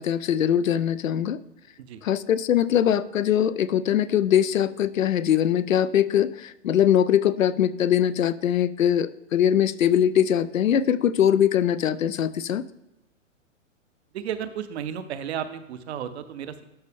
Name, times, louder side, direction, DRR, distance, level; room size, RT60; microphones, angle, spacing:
voice 1, 0.0-1.4 2.0-12.6, left 10 dB, 80° left, 16 dB, 0.6 m, -22 dB
voice 2, 14.1-16.6, right 9 dB, 55° right, 12 dB, 0.8 m, -33 dB
12.0 x 4.1 x 3.4 m, 0.94 s
figure-of-eight pair, 115°, 39 cm